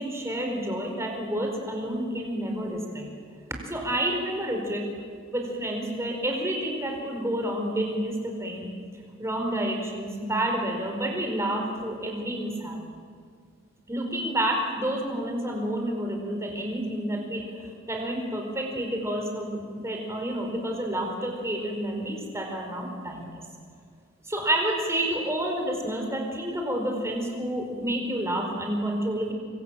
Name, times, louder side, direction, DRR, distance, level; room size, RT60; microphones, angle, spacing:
voice 1, 0.0-3.1 3.7-4.9 5.3-8.7 9.2-12.8 13.9-23.3 24.3-29.3, right 1 dB, 15° right, 2 dB, 4.9 m, -29 dB
26.0 x 24.5 x 7.7 m, 2.1 s
head